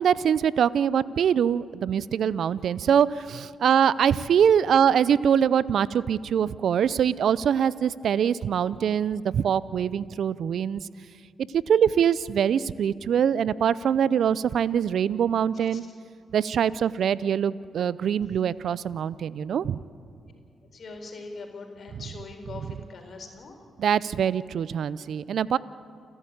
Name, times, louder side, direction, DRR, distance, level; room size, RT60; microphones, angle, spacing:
voice 1, 0.0-10.8 11.7-15.8 16.3-19.8 21.9-22.0 23.8-25.6, right 8 dB, 70° right, 19 dB, 0.5 m, -23 dB
voice 2, 20.7-23.5, left 3 dB, 60° left, 3 dB, 4.3 m, -41 dB
29.5 x 12.0 x 8.7 m, 2.5 s
hypercardioid pair, 45°, 0 cm